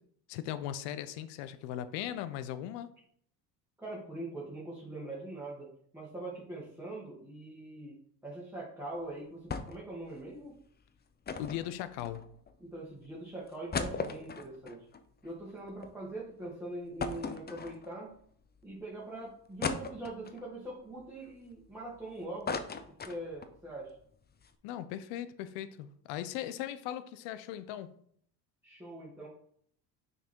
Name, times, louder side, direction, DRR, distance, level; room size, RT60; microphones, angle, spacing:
voice 1, 0.3-2.9 11.4-12.2 24.6-27.9, left 11 dB, 80° left, 13 dB, 0.7 m, -38 dB
voice 2, 3.8-7.9 8.2-10.6 12.6-14.9 15.2-18.1 18.6-22.6 23.1-24.0 28.6-29.3, right 2 dB, 5° right, -6 dB, 1.9 m, -42 dB
sound 1, 9.5-9.9 10.2-10.3 11.3-12.5 13.1-13.2 13.5-15.9 16.3-16.4 17.0-18.1 18.7-18.8 19.6-20.5 21.0-22.0 22.2-23.6 23.9-24.0 24.3-24.5, left 5 dB, 25° left, 0.6 m, -38 dB
5.9 x 4.0 x 4.5 m, 0.65 s
supercardioid pair, 80°, 43 cm